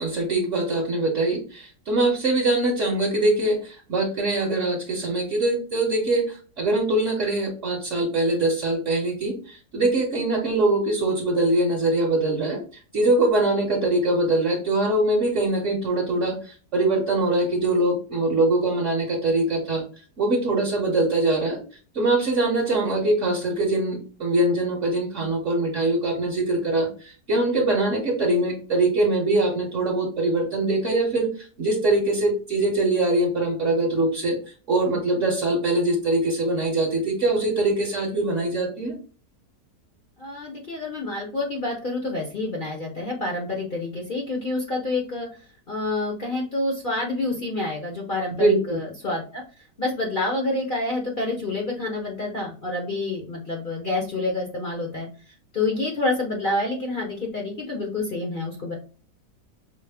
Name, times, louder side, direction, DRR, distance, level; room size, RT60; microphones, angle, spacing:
voice 1, 0.0-12.6 12.9-19.8 20.2-21.6 21.9-34.4 34.7-38.9 48.3-48.8, right 2 dB, 50° right, -2 dB, 1.1 m, -23 dB
voice 2, 40.2-45.3 45.7-49.4 49.8-55.1 55.5-58.7, left 2 dB, 45° left, -1 dB, 0.7 m, -28 dB
5.5 x 2.1 x 3.4 m, 0.37 s
omnidirectional pair, 1.8 m